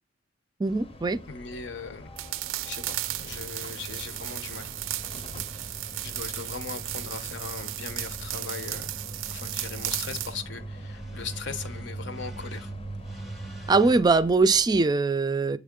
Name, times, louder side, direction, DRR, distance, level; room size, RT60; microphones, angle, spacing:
sound 1, 0.6-14.7, left 1 dB, 30° left, 0.7 m, -46 dB
voice 1, 0.6-1.2 13.7-15.6, right 3 dB, 20° right, 0.4 m, -21 dB
voice 2, 1.3-2.1 2.6-4.7 5.6-8.9 9.3-12.7, left 5 dB, 65° left, 0.8 m, -39 dB
sound 2, 2.2-10.4, right 15 dB, 90° right, 0.4 m, -35 dB
sound 3, 2.9-14.0, right 2 dB, ahead, 0.7 m, -41 dB
7.6 x 3.5 x 3.7 m
head